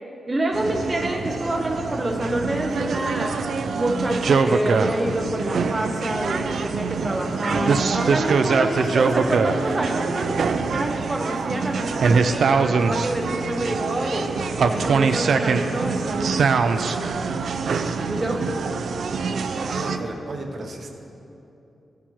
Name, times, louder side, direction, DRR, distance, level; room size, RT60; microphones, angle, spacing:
voice 1, 0.3-3.4 3.7-14.3 14.7-17.5 18.1-18.5 19.6-19.8, right 1 dB, 20° right, 1 dB, 0.6 m, -27 dB
sound 1, 0.5-20.0, right 5 dB, 70° right, 0.4 m, -24 dB
voice 2, 19.7-20.9, right 2 dB, 55° right, 2 dB, 0.9 m, -32 dB
14.5 x 8.4 x 3.1 m, 2.9 s
wide cardioid pair, 130°, 0 cm